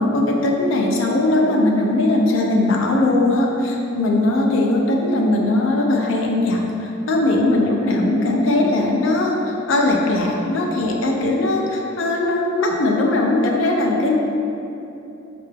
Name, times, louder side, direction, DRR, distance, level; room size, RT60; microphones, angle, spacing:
voice 1, 0.0-14.2, left 2 dB, 70° left, 0 dB, 0.4 m, -19 dB
3.7 x 2.2 x 3.3 m, 2.9 s
head